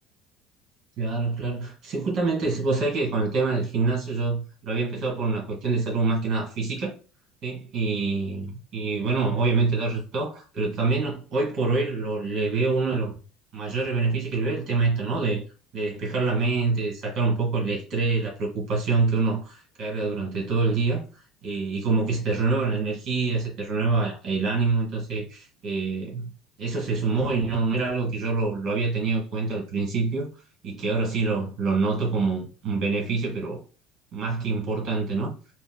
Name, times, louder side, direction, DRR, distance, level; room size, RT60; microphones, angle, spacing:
voice 1, 1.0-6.9 7.4-13.1 13.5-15.4 15.7-26.3 26.6-30.3 30.6-33.6 34.1-35.3, right 4 dB, 55° right, 1.3 m, -26 dB
4.9 x 2.1 x 2.2 m
cardioid pair, 115°, 0 cm